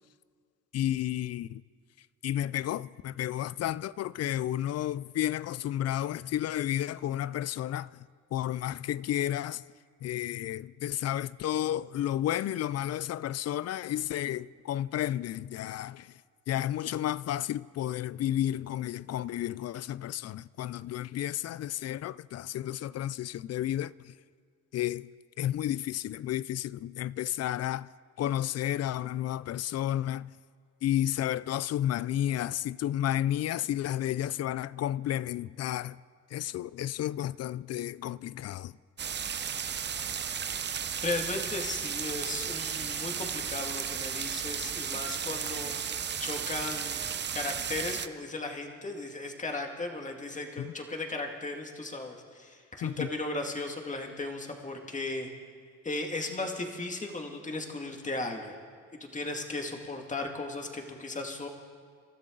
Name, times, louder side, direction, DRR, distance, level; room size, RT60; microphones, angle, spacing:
voice 1, 0.7-1.6 2.2-7.9 8.3-9.6 10.0-16.1 16.5-24.1 24.7-25.1 25.4-27.9 28.2-30.3 30.8-36.0 36.3-38.7 50.6-50.7 52.8-53.1, left 12 dB, 55° left, 0.4 m, -32 dB
sound 1, 39.0-48.1, right 7 dB, 35° right, 0.7 m, -34 dB
voice 2, 41.0-55.3 55.8-58.6 58.9-61.5, left 2 dB, 25° left, 2.2 m, -36 dB
27.5 x 13.0 x 3.9 m
cardioid pair, 90°, 30 cm